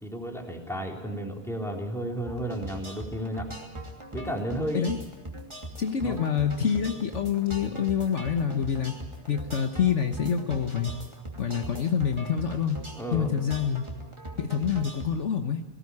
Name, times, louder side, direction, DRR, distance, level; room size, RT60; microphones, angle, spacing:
voice 1, 0.0-3.5 4.1-4.9 6.0-6.2 13.0-13.3, right 1 dB, ahead, 0 dB, 3.4 m, -33 dB
sound 1, 2.3-15.1, right 1 dB, 20° right, 2.8 m, -40 dB
voice 2, 5.8-9.0 9.3-10.9 11.4-12.8 13.1-13.9 14.4-15.6, left 7 dB, 60° left, 5 dB, 1.4 m, -27 dB
19.0 x 17.5 x 9.7 m, 1.1 s
omnidirectional pair, 1.5 m